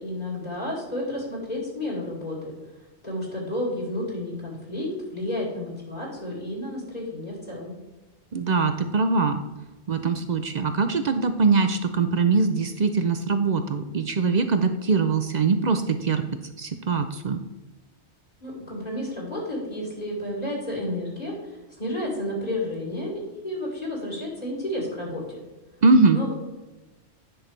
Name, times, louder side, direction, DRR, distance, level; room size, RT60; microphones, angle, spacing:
voice 1, 0.0-2.5 3.0-7.7 18.4-25.4 26.1-26.3, left 1 dB, 40° left, -4 dB, 2.5 m, -31 dB
voice 2, 8.3-9.4 9.9-16.2 16.6-17.4 25.8-26.2, right 4 dB, 50° right, 8 dB, 0.6 m, -22 dB
10.5 x 6.1 x 3.3 m, 1.1 s
omnidirectional pair, 1.1 m